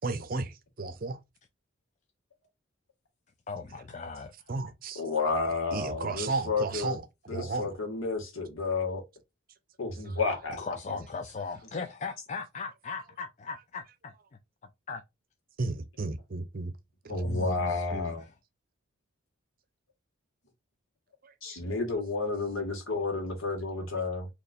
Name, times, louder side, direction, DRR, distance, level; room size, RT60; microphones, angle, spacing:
voice 1, 0.0-1.2 4.5-5.0 5.7-7.0 7.3-7.8 10.1-10.2 15.6-16.7 21.2-21.6, right 3 dB, 45° right, 0.6 m, -34 dB
voice 2, 3.5-4.3 10.6-14.1 14.9-15.0 17.2-18.3, left 4 dB, 35° left, 0.4 m, -38 dB
voice 3, 5.0-7.0 7.3-9.0 9.8-10.8 17.1-18.2 21.4-24.3, left 3 dB, 75° left, 1.7 m, -31 dB
4.2 x 2.9 x 2.5 m
head